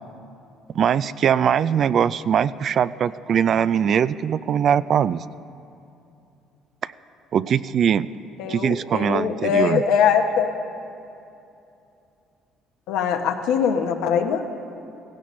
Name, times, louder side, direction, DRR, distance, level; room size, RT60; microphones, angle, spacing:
voice 1, 0.7-5.2 6.8-6.9 7.3-8.1 8.5-9.8, right 8 dB, 55° right, 16 dB, 0.3 m, -21 dB
voice 2, 8.4-10.5 12.9-14.4, left 7 dB, 80° left, 5 dB, 1.0 m, -22 dB
16.5 x 16.0 x 3.2 m, 2.7 s
supercardioid pair, 80°, 0 cm